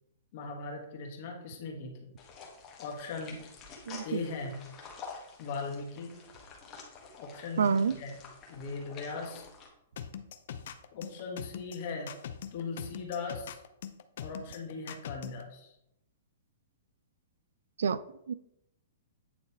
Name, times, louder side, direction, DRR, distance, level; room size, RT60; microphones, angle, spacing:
voice 1, 0.3-2.0 2.8-3.4 4.0-4.6 5.4-6.2 7.2-8.2 8.5-9.5 10.9-12.1 12.5-13.6 14.2-15.7, left 4 dB, 45° left, 1.4 m, -39 dB
sound 1, 2.2-9.7, left 5 dB, 20° left, 1.3 m, -49 dB
voice 2, 3.9-4.2 7.6-7.9 17.8-18.0 18.3-18.4, right 6 dB, 90° right, 0.3 m, -27 dB
sound 2, 10.0-15.4, left 8 dB, 60° left, 0.5 m, -41 dB
8.8 x 3.2 x 4.3 m
hypercardioid pair, 160°, 0 cm